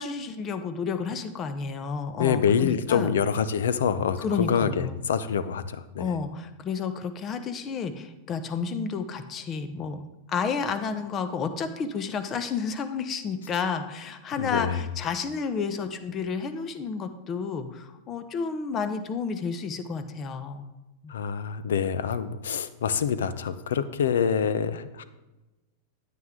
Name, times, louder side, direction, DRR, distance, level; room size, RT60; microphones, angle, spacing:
voice 1, 0.0-3.1 4.2-5.0 6.0-10.0 10.3-20.6 21.0-21.1, left 5 dB, 35° left, 10 dB, 0.9 m, -31 dB
voice 2, 2.1-6.1 14.4-14.8 21.1-25.0, left 7 dB, 80° left, 14 dB, 0.6 m, -26 dB
9.4 x 9.3 x 3.7 m, 1.1 s
hypercardioid pair, 110°, 0 cm